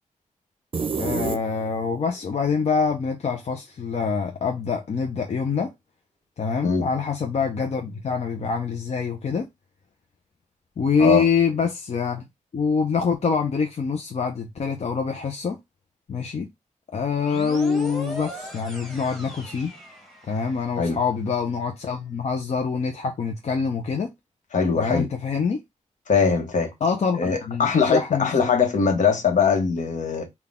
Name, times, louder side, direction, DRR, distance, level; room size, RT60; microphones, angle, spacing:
sound 1, 0.7-2.0, right 5 dB, 45° right, 0.6 m, -28 dB
voice 1, 1.0-5.7 6.4-9.5 10.8-12.2 12.5-15.6 16.1-16.5 16.9-19.7 20.3-24.1 24.8-25.6 26.8-28.3, left 5 dB, 55° left, 0.6 m, -25 dB
sound 2, 17.2-20.7, equal, ahead, 1.2 m, -38 dB
voice 2, 24.5-25.1 26.1-26.7 27.1-30.3, left 5 dB, 75° left, 1.0 m, -21 dB
3.8 x 2.3 x 3.5 m
wide cardioid pair, 95°, 13 cm